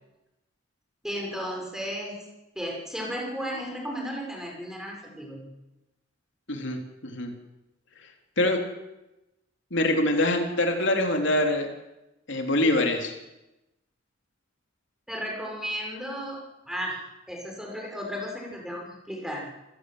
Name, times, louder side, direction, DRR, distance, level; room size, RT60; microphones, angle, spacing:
voice 1, 1.0-2.2 2.5-5.5 15.1-17.0 17.3-19.5, equal, 5° right, 0 dB, 6.6 m, -34 dB
voice 2, 6.5-7.3 8.4-8.6 9.7-11.7 12.3-13.1, left 1 dB, 65° left, 3 dB, 3.6 m, -24 dB
28.5 x 16.0 x 8.1 m, 0.99 s
head